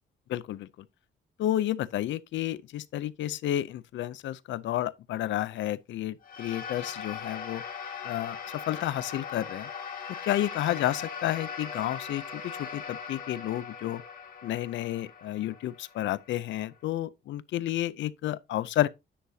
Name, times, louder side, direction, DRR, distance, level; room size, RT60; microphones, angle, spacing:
voice 1, 0.3-0.9 1.4-7.6 8.0-9.7 10.2-14.0 14.4-18.9, left 13 dB, 80° left, 0.5 m, -31 dB
sound 1, 6.2-16.8, left 6 dB, 50° left, 2.2 m, -40 dB
9.9 x 6.3 x 2.7 m
cardioid pair, 145°, 19 cm